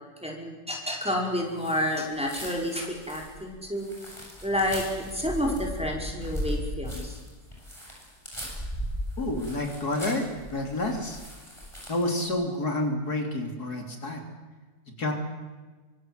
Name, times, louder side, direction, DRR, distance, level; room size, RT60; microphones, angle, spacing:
voice 1, 0.0-3.9 4.4-7.2, equal, 5° right, -2 dB, 5.0 m, -30 dB
sound 1, 1.5-12.2, left 1 dB, 20° left, 8.0 m, -38 dB
voice 2, 9.2-11.2 11.9-14.2 15.0-15.1, left 1 dB, 80° left, 3 dB, 3.8 m, -29 dB
25.5 x 24.5 x 7.9 m, 1.3 s
omnidirectional pair, 1.6 m